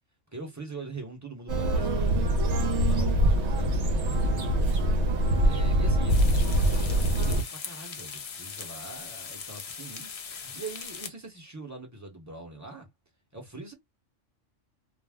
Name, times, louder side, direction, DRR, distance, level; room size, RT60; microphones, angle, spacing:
voice 1, 0.3-4.4 5.4-12.9 13.3-13.7, right 3 dB, 15° right, 0.8 m, -43 dB
sound 1, 1.5-7.4, right 1 dB, 65° right, 1.0 m, -24 dB
sound 2, 6.1-11.1, left 6 dB, 70° left, 0.3 m, -40 dB
2.5 x 2.0 x 3.4 m
omnidirectional pair, 1.3 m